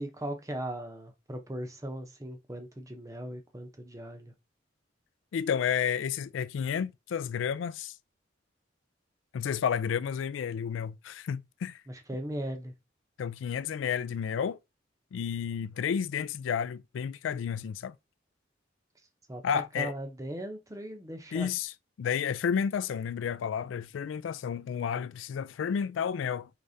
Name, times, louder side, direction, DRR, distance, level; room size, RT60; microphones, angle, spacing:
voice 1, 0.0-4.3 11.9-12.7 19.3-21.5, right 1 dB, 15° right, 0.7 m, -38 dB
voice 2, 5.3-7.9 9.3-11.8 13.2-14.6 15.1-17.9 19.4-19.9 21.3-21.7 22.0-26.5, left 7 dB, 90° left, 0.3 m, -31 dB
4.9 x 3.3 x 2.6 m
head